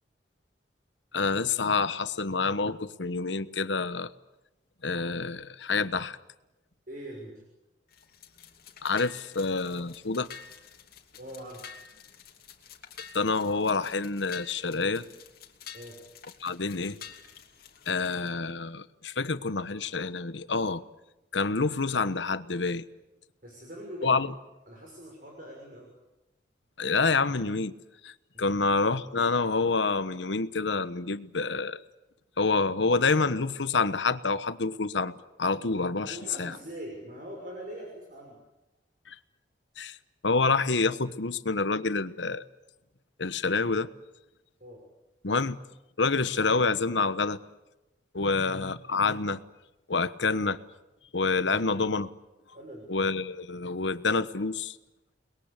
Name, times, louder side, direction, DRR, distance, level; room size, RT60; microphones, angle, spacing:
voice 1, 1.1-4.1 4.8-6.2 8.8-10.3 13.1-15.0 16.4-17.0 17.9-20.8 21.3-22.8 24.0-24.3 26.8-27.7 28.0-28.1 28.4-31.8 32.4-35.1 35.4-36.6 39.1-39.2 39.8-40.0 40.2-42.4 43.2-43.9 45.2-45.6 46.0-47.4 48.1-49.4 49.9-50.6 51.1-52.1 52.9-54.8, left 4 dB, 80° left, 13 dB, 1.1 m, -27 dB
voice 2, 6.9-7.4 11.2-11.7 15.7-16.0 23.4-24.2 24.7-25.9 28.3-28.7 36.1-38.4 44.6-44.8 48.2-48.4 52.5-53.0, right 1 dB, 50° right, 0 dB, 6.2 m, -43 dB
sound 1, 7.9-18.3, left 7 dB, 55° left, 2.8 m, -49 dB
30.0 x 21.5 x 8.3 m, 0.98 s
head